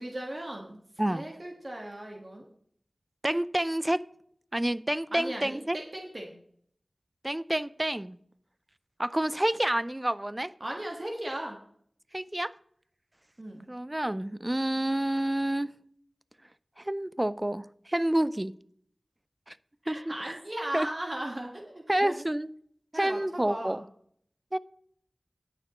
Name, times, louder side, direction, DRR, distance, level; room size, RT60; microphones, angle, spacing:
voice 1, 0.0-0.8 1.1-2.5 5.1-6.3 10.6-11.6 13.4-13.7 19.8-22.2 22.9-23.8, right 1 dB, 45° right, 1.5 m, -37 dB
voice 2, 3.2-4.0 4.5-5.8 7.2-8.2 9.0-10.5 12.1-12.5 13.7-15.7 16.8-18.5 19.5-19.6 19.9-20.4 20.7-20.9 21.9-22.5 22.9-23.8 24.5-24.6, right 1 dB, 20° right, 0.4 m, -28 dB
18.0 x 6.6 x 3.0 m
wide cardioid pair, 45°, 0 cm